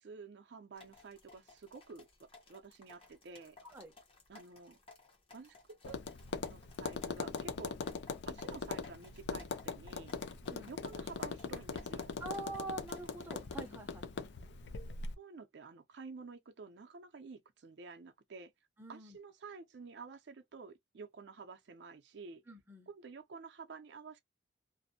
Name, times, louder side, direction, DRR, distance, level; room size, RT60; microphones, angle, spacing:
voice 1, 0.0-3.6 4.3-4.8 5.3-6.0 6.4-7.8 8.3-10.1 10.7-12.1 15.2-18.5 18.9-22.4 22.9-24.2, right 4 dB, 60° right, 0.4 m, -51 dB
sound 1, 0.8-13.8, left 3 dB, 30° left, 0.7 m, -60 dB
Tap, 5.8-15.1, left 4 dB, 65° left, 0.4 m, -41 dB
voice 2, 12.2-14.3 18.8-19.2 22.5-22.9, right 2 dB, 10° right, 0.6 m, -45 dB
2.5 x 2.0 x 2.6 m
head